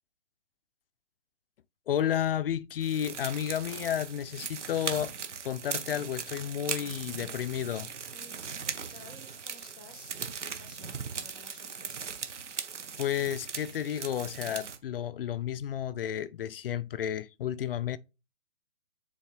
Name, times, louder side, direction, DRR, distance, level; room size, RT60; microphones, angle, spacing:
voice 1, 1.9-5.1 5.4-7.9 13.0-18.0, left 10 dB, 55° left, 0.4 m, -32 dB
sound 1, 2.8-14.8, right 6 dB, 90° right, 1.1 m, -39 dB
voice 2, 8.1-12.2, left 2 dB, 10° right, 0.3 m, -54 dB
7.2 x 4.2 x 3.3 m
hypercardioid pair, 150°, 35 cm